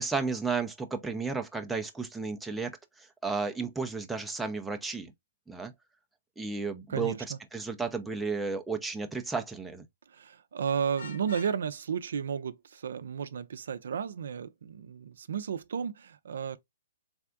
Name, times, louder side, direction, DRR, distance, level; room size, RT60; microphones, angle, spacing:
voice 1, 0.0-5.1 5.5-5.7 6.4-7.1 7.5-9.9, right 4 dB, 5° right, 0.5 m, -33 dB
voice 2, 6.9-7.4 10.1-16.6, right 7 dB, 70° right, 0.5 m, -33 dB
Vehicle horn car horn honking, 10.9-11.6, left 3 dB, 80° left, 1.5 m, -44 dB
3.4 x 3.4 x 2.3 m
hypercardioid pair, 145°, 0 cm